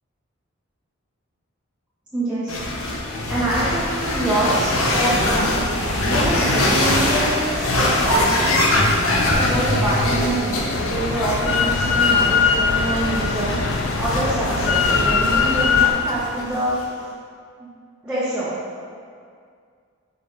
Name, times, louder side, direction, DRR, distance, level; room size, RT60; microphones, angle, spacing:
voice 1, 2.1-2.6 3.3-5.7 6.1-8.6 9.1-13.6 14.0-16.7 17.6-17.7 18.0-18.6, right 1 dB, 5° right, -12 dB, 1.1 m, -25 dB
sound 1, 2.5-16.8, left 1 dB, 85° left, 1.0 m, -22 dB
Drill, 10.7-15.9, left 6 dB, 60° left, 0.4 m, -21 dB
5.2 x 5.0 x 5.5 m, 2.2 s
head